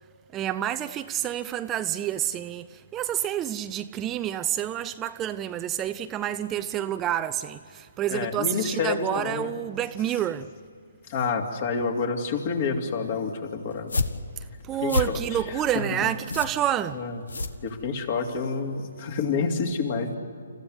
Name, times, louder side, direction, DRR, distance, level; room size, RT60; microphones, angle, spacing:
voice 1, 0.3-10.5 14.7-17.0, right 11 dB, 20° right, 0.5 m, -28 dB
voice 2, 8.1-9.5 11.1-13.9 14.8-15.2 16.0-16.1 16.9-17.1 17.6-20.2, left 5 dB, 45° left, 3.0 m, -28 dB
sound 1, 13.7-18.2, left 2 dB, 75° left, 1.3 m, -31 dB
29.5 x 15.0 x 9.8 m
figure-of-eight pair, 140°, 0 cm